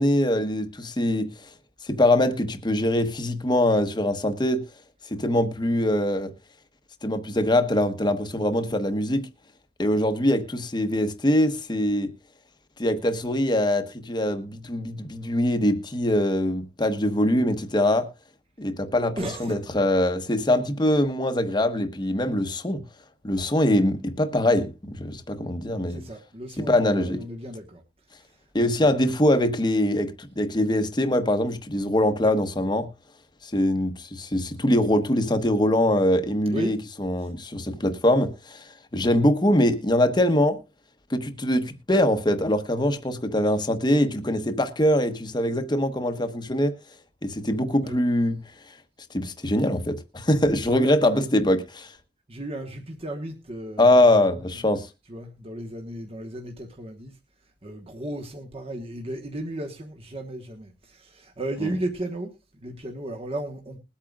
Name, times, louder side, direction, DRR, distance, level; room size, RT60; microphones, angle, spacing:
voice 1, 0.0-1.3 1.8-4.6 5.1-6.3 7.0-9.3 9.8-12.1 12.8-18.1 18.6-22.8 23.2-26.0 26.6-27.2 28.5-32.9 33.4-38.6 38.9-40.6 41.1-46.8 47.2-48.4 49.1-51.9 53.8-54.9 61.6-61.7, left 1 dB, 25° left, 1.1 m, -23 dB
voice 2, 19.2-19.8 25.9-27.8 28.2-28.9 36.5-36.7 37.2-37.3 47.8-48.0 50.6-51.2 52.3-54.2 55.1-57.2 57.6-63.8, right 1 dB, 35° right, 1.3 m, -35 dB
21.0 x 8.6 x 2.4 m
head